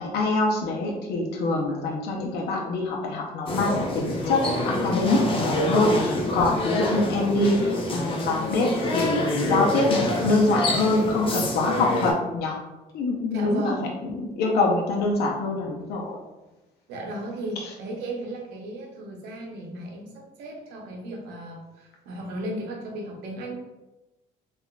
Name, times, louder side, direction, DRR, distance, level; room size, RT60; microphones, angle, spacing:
voice 1, 0.0-12.6 12.9-16.2, left 2 dB, 70° left, -1 dB, 0.6 m, -25 dB
sound 1, 3.5-12.1, left 1 dB, 30° left, 0.6 m, -27 dB
voice 2, 13.3-13.9 16.9-23.6, right 1 dB, 90° right, 1 dB, 0.7 m, -35 dB
3.6 x 2.4 x 2.2 m, 1.0 s
cardioid pair, 110°, 17 cm